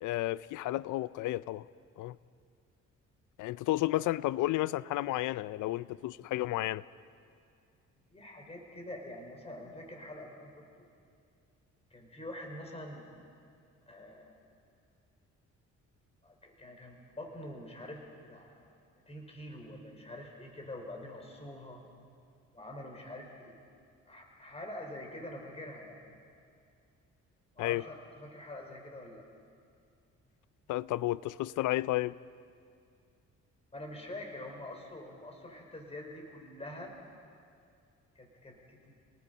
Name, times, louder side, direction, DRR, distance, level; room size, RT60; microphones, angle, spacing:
voice 1, 0.0-1.7 2.0-2.2 3.4-6.8 27.6-27.8 30.7-32.2, left 16 dB, 80° left, 18 dB, 0.5 m, -32 dB
voice 2, 8.1-10.6 11.9-13.0 13.9-14.4 16.2-18.7 19.1-21.8 22.5-23.5 24.1-26.0 27.6-29.2 33.7-36.9 38.1-39.0, left 1 dB, 20° left, 1 dB, 4.8 m, -45 dB
29.5 x 19.0 x 5.4 m, 2.4 s
cardioid pair, 90°, 30 cm